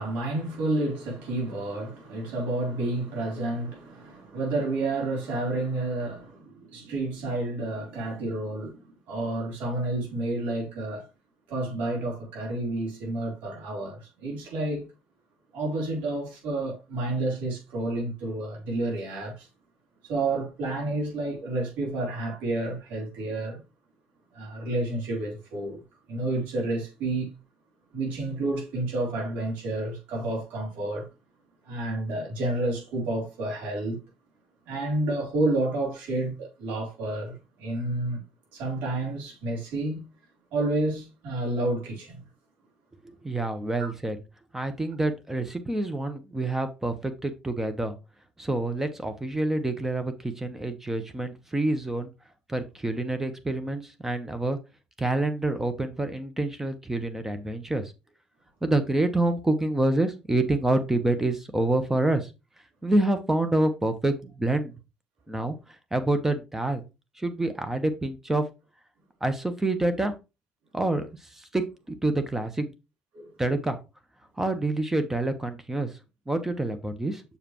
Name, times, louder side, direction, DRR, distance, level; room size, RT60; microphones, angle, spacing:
voice 1, 0.0-11.1 11.5-14.9 15.5-19.5 20.0-23.6 24.3-27.3 27.9-31.1 31.6-34.0 34.7-38.2 38.5-40.0 40.5-42.2 43.8-43.9 73.1-73.3, right 2 dB, 75° right, 3.6 m, -30 dB
voice 2, 43.0-44.2 44.5-48.0 48.4-52.1 52.5-54.6 55.0-57.8 58.6-62.3 62.8-64.7 65.3-65.5 65.9-66.8 67.2-68.4 69.2-70.1 70.7-71.1 71.4-72.7 73.4-73.8 74.4-75.9 76.3-77.2, right 2 dB, 15° right, 1.1 m, -27 dB
6.8 x 4.9 x 3.0 m
supercardioid pair, 80°, 3 cm